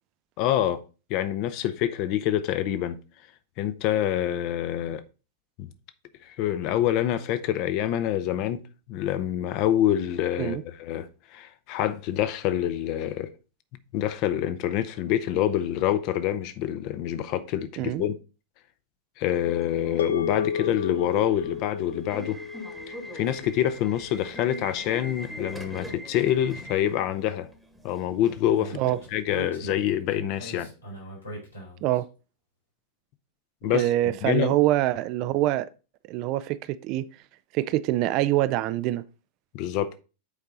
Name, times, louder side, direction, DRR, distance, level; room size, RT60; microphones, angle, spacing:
voice 1, 0.4-0.8 1.1-3.0 3.6-5.0 5.6-5.7 6.2-8.6 8.9-13.3 13.9-18.1 19.2-22.4 23.1-27.5 27.8-28.8 29.1-30.7 33.6-33.9 34.2-34.6 39.5-40.0, left 11 dB, 45° left, 0.8 m, -26 dB
Subway metro underground / Alarm, 19.4-29.2, equal, 5° right, 1.2 m, -42 dB
sound 1, 20.0-24.5, left 7 dB, 65° left, 0.4 m, -33 dB
Speech, 28.6-32.0, right 2 dB, 80° left, 3.7 m, -40 dB
voice 2, 33.7-35.7 36.1-37.1 37.5-39.0, right 15 dB, 40° right, 0.4 m, -25 dB
8.2 x 4.6 x 3.8 m
figure-of-eight pair, 90°, 0 cm